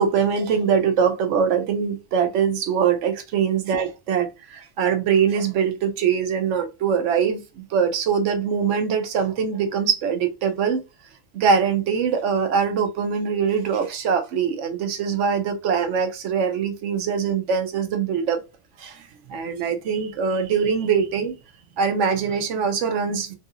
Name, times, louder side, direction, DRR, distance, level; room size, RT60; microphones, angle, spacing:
voice 1, 0.0-10.8 11.3-18.4 18.8-19.0 19.3-21.4 21.8-23.4, right 6 dB, 90° right, 1.0 m, -23 dB
3.1 x 2.8 x 2.4 m
omnidirectional pair, 1.2 m